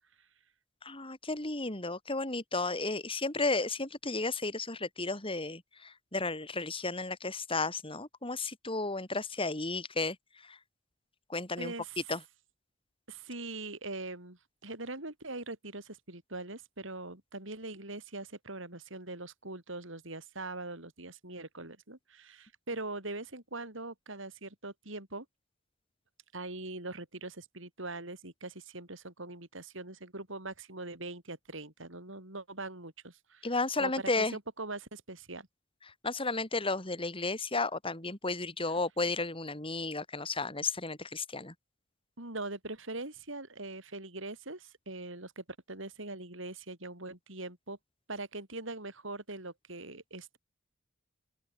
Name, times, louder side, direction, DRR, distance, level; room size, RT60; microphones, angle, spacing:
voice 1, 0.8-10.6 11.3-11.7 12.1-12.2 33.4-34.4 35.9-41.5, left 3 dB, 25° left, 5.3 m, -33 dB
voice 2, 11.6-12.0 13.1-25.3 26.3-33.5 33.8-35.5 38.7-38.8 42.2-47.8 48.1-50.4, right 2 dB, 70° right, 6.1 m, -42 dB
open air
head